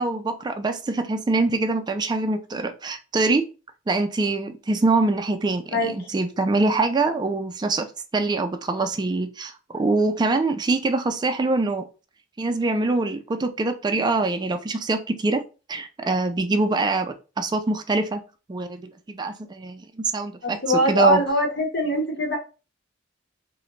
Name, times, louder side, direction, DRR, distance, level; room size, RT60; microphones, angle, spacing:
voice 1, 0.0-3.4 3.9-7.9 8.1-11.8 12.4-15.4 15.7-18.2 18.5-19.9 20.1-21.2, right 3 dB, 25° right, 0.3 m, -24 dB
voice 2, 5.7-6.1 20.4-22.4, equal, 65° left, 0.9 m, -22 dB
2.9 x 2.1 x 3.8 m
head